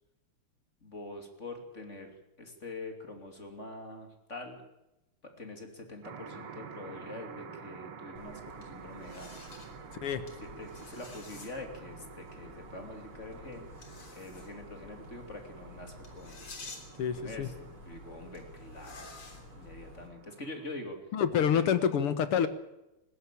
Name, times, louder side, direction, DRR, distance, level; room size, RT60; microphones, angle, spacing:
voice 1, 0.8-4.6 5.4-9.3 10.4-13.7 14.1-16.4 17.2-19.1 19.5-21.0 21.5-21.6, left 2 dB, 30° left, 4 dB, 3.3 m, -44 dB
sound 1, 6.0-20.7, right 6 dB, 85° right, 2.6 m, -50 dB
sound 2, 8.2-20.1, left 2 dB, 70° left, 4.3 m, -50 dB
voice 2, 17.0-17.5 21.1-22.5, left 8 dB, 85° left, 12 dB, 2.4 m, -27 dB
20.0 x 16.5 x 8.5 m, 0.92 s
omnidirectional pair, 2.4 m